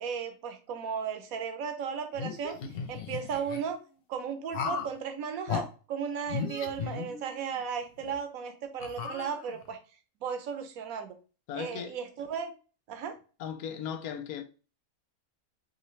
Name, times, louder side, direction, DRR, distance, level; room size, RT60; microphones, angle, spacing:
voice 1, 0.0-2.6 2.9-3.8 4.1-9.8 10.2-11.2 11.5-12.5 12.9-13.2, right 7 dB, 70° right, 1.2 m, -35 dB
sound 1, 2.1-3.6 4.5-5.0 5.5-5.7 6.3-7.5 8.0-8.1 8.8-9.7, left 6 dB, 55° left, 0.7 m, -36 dB
voice 2, 11.5-12.0 13.4-14.4, left 8 dB, 85° left, 1.1 m, -37 dB
5.0 x 2.7 x 3.1 m
omnidirectional pair, 1.6 m